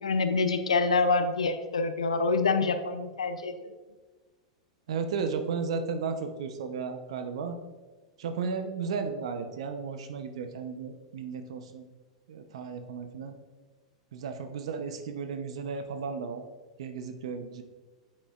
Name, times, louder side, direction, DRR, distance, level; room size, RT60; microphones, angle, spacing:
voice 1, 0.0-3.5, left 4 dB, 90° left, 9 dB, 0.5 m, -26 dB
voice 2, 4.9-7.6 8.2-11.8 12.3-13.4 14.1-16.4 16.8-17.6, right 5 dB, 70° right, 7 dB, 0.7 m, -34 dB
8.7 x 7.5 x 2.4 m, 1.3 s
hypercardioid pair, 105°, 3 cm